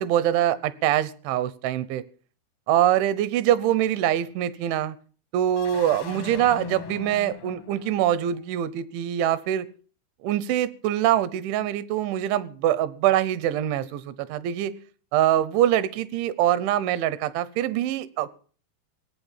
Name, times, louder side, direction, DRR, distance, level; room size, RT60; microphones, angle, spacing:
voice 1, 0.0-2.0 2.7-5.0 5.3-9.7 10.2-14.7 15.1-18.3, right 11 dB, 80° right, 16 dB, 3.3 m, -24 dB
sound 1, 5.4-8.4, left 10 dB, 75° left, 1.5 m, -40 dB
18.5 x 8.8 x 7.3 m, 0.42 s
omnidirectional pair, 5.4 m